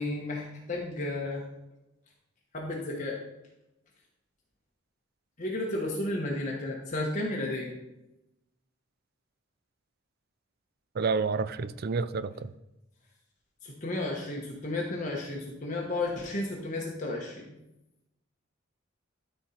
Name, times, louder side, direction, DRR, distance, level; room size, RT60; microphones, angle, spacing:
voice 1, 0.0-1.4 2.5-3.2 5.4-7.8 13.6-17.5, left 2 dB, 40° left, -2 dB, 1.2 m, -33 dB
voice 2, 11.0-12.5, right 4 dB, 50° right, 14 dB, 0.4 m, -29 dB
13.0 x 4.5 x 4.3 m, 0.92 s
head